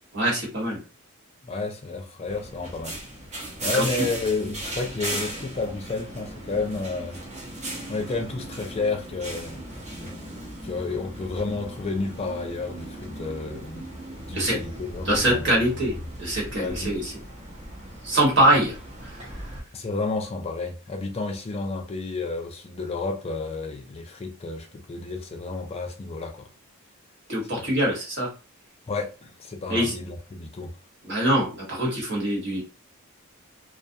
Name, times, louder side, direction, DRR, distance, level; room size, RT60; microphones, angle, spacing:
voice 1, 0.1-0.8 3.7-4.1 14.3-14.6 15.0-15.9 16.2-17.1 18.0-18.7 19.0-19.1 27.3-28.3 29.7-29.9 31.0-32.6, right 1 dB, 55° right, 1.2 m, -23 dB
voice 2, 1.4-2.9 3.6-7.2 7.9-9.6 10.6-13.8 14.3-15.5 16.5-17.0 19.7-26.5 27.5-27.7 28.9-30.7, left 3 dB, 25° left, 0.4 m, -31 dB
sound 1, 2.3-19.6, right 1 dB, 30° right, 0.8 m, -37 dB
2.3 x 2.2 x 2.6 m
head